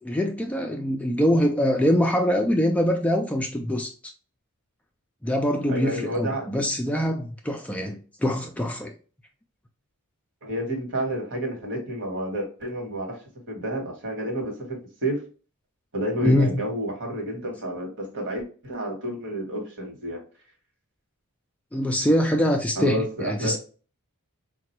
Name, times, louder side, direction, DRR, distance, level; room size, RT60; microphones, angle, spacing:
voice 1, 0.0-4.1 5.2-8.9 16.2-16.6 21.7-23.6, equal, 5° left, 2 dB, 0.3 m, -24 dB
voice 2, 5.7-6.5 10.4-13.2 13.5-15.2 15.9-20.2 22.8-23.5, right 1 dB, 60° right, 2 dB, 1.2 m, -30 dB
3.7 x 2.2 x 2.9 m, 0.37 s
head